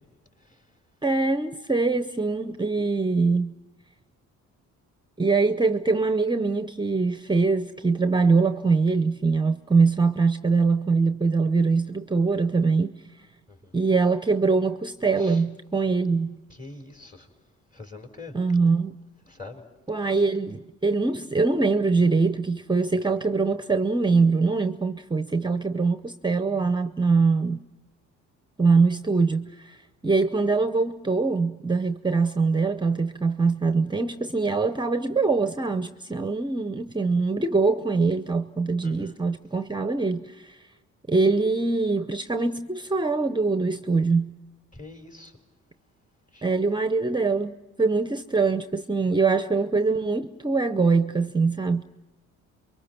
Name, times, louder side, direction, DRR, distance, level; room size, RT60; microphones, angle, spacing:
voice 1, 1.0-3.5 5.2-13.0 13.7-16.4 18.3-18.9 19.9-27.6 28.6-29.8 30.0-40.6 41.1-44.4 46.4-51.8, right 4 dB, 15° right, 0.7 m, -23 dB
voice 2, 16.6-17.3 17.7-18.3 19.3-19.6 38.8-39.2 44.7-45.3 46.3-46.4, left 3 dB, 25° left, 4.2 m, -43 dB
28.5 x 23.5 x 5.9 m
cardioid pair, 90°, 30 cm